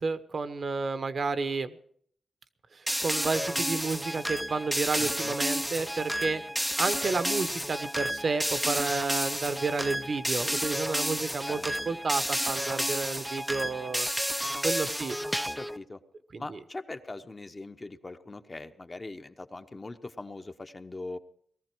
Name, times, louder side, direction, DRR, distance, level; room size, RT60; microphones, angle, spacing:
voice 1, 0.0-1.7 3.0-6.4 6.8-14.1 14.6-15.4 16.3-16.6, right 4 dB, 50° right, 11 dB, 0.9 m, -31 dB
sound 1, 2.9-15.8, equal, ahead, 0.5 m, -31 dB
voice 2, 5.0-5.4 11.5-11.7 15.6-16.0 16.4-21.2, left 2 dB, 25° left, 7 dB, 0.9 m, -41 dB
19.0 x 14.5 x 4.6 m, 0.62 s
wide cardioid pair, 115°, 0 cm